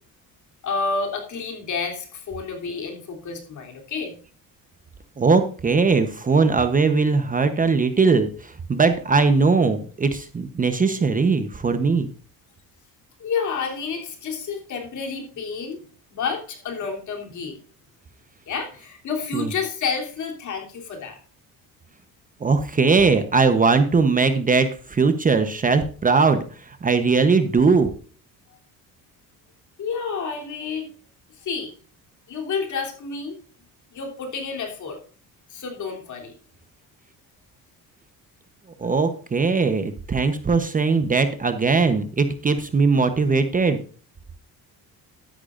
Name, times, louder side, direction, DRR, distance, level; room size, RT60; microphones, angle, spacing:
voice 1, 0.6-4.2 13.2-15.8 16.1-17.6 18.5-21.2 29.8-30.9 31.4-31.7 32.3-33.4 33.9-35.0 35.5-36.3, left 5 dB, 50° left, 2 dB, 3.2 m, -29 dB
voice 2, 5.2-12.1 19.3-19.5 22.4-27.9 38.8-43.8, right 4 dB, 20° right, 9 dB, 0.9 m, -20 dB
13.0 x 10.5 x 2.5 m, 0.40 s
cardioid pair, 130°, 37 cm